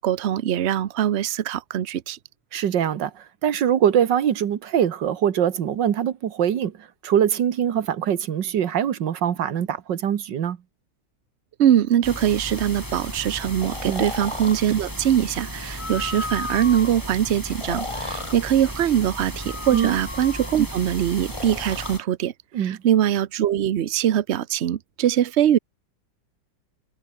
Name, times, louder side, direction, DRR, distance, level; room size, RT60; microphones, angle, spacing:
voice 1, 0.0-2.2 11.6-22.3 22.6-25.6, right 10 dB, 50° right, 0.8 m, -22 dB
voice 2, 2.5-3.1 3.4-6.7 7.0-10.6 13.9-14.0 19.7-20.0 22.5-22.8, right 9 dB, 80° right, 2.0 m, -23 dB
sound 1, 12.0-22.0, equal, 10° right, 6.0 m, -35 dB
Breathing, 13.6-14.6 15.7-16.9 17.5-18.4 19.3-20.6 21.2-22.0, left 3 dB, 20° left, 1.5 m, -34 dB
omnidirectional pair, 1.9 m